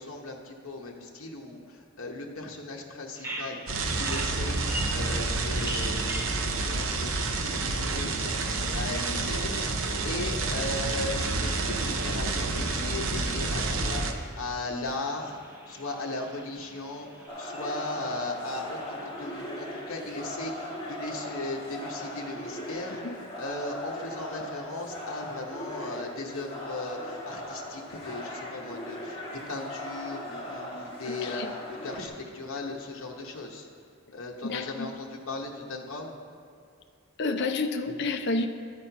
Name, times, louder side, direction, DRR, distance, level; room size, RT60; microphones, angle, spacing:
voice 1, 0.0-33.7 34.1-36.1, left 2 dB, 70° left, -1 dB, 0.9 m, -37 dB
Bird vocalization bird call bird song, 3.2-23.0, right 1 dB, 10° right, 0.6 m, -45 dB
sound 1, 3.7-14.1, right 3 dB, 65° right, 0.7 m, -29 dB
sound 2, 17.3-32.1, left 1 dB, 20° left, 1.9 m, -39 dB
voice 2, 31.1-31.5 34.4-34.9 37.2-38.5, left 3 dB, 50° left, 6 dB, 0.5 m, -30 dB
12.5 x 4.3 x 5.5 m, 2.4 s
head